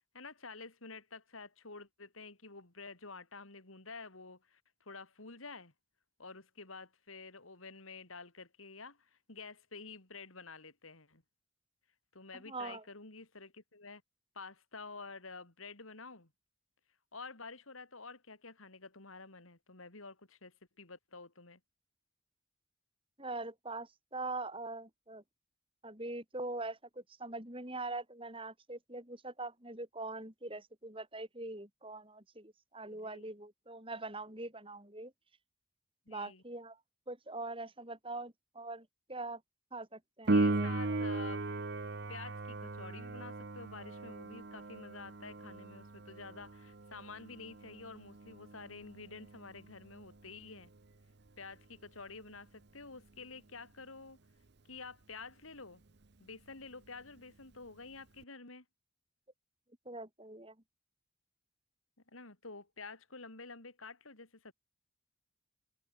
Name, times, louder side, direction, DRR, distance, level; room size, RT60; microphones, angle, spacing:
voice 1, 0.1-5.7 6.2-11.2 12.1-14.0 14.3-16.3 17.1-21.6 32.9-33.3 36.1-36.4 40.3-41.4 42.1-50.7 51.4-54.2 54.7-55.8 56.2-58.6 62.1-64.5, left 4 dB, 90° left, 3.5 m, -49 dB
voice 2, 12.3-12.8 23.2-25.2 25.8-35.1 36.1-36.8 37.1-39.4 39.7-40.8 59.8-60.6, right 2 dB, 25° right, 6.2 m, -43 dB
Piano, 40.3-50.7 58.2-58.3, right 2 dB, 55° right, 0.9 m, -37 dB
head